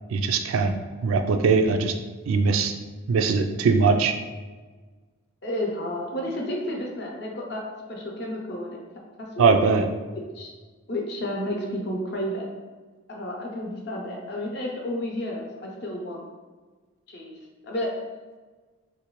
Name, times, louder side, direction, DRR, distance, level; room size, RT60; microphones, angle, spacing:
voice 1, 0.1-0.7 1.0-1.9 2.3-2.7 3.1-4.1 9.4-9.9, right 4 dB, 75° right, 6 dB, 0.3 m, -20 dB
voice 2, 5.4-7.6 7.9-8.8 9.2-9.5 10.3-10.5 10.9-12.5 13.1-16.2 17.1-17.3 17.6-17.9, left 1 dB, 50° left, 0 dB, 0.6 m, -31 dB
3.6 x 2.5 x 3.0 m, 1.3 s
head